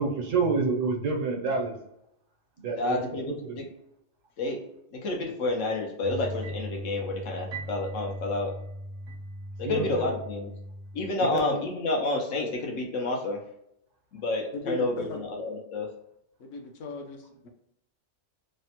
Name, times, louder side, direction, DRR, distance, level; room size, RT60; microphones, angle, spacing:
voice 1, 0.0-1.8 2.6-3.0 3.3-3.6 9.6-10.3 11.2-11.6, right 4 dB, 80° right, 1 dB, 1.1 m, -28 dB
voice 2, 2.8-3.6 4.4-4.6 4.9-8.5 9.6-10.5 10.9-13.4 14.1-15.9, left 2 dB, 85° left, 0 dB, 1.1 m, -29 dB
sound 1, 6.0-11.1, right 1 dB, 55° right, 0.6 m, -38 dB
voice 3, 14.5-15.2 16.4-17.5, left 2 dB, 70° left, 3 dB, 0.8 m, -37 dB
3.2 x 2.1 x 2.8 m, 0.80 s
omnidirectional pair, 1.3 m